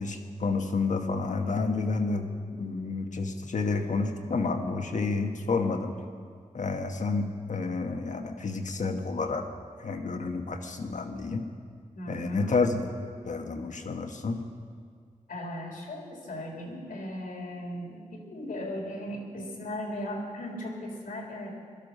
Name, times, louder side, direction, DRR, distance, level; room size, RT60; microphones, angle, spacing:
voice 1, 0.0-2.3 2.5-5.9 6.5-9.5 9.8-11.4 12.1-12.9 13.2-14.4, left 4 dB, 60° left, 5 dB, 1.4 m, -30 dB
voice 2, 11.9-12.5 15.3-21.6, left 1 dB, 85° left, -1 dB, 3.4 m, -37 dB
18.0 x 12.0 x 5.4 m, 2.1 s
cardioid pair, 60°, 14 cm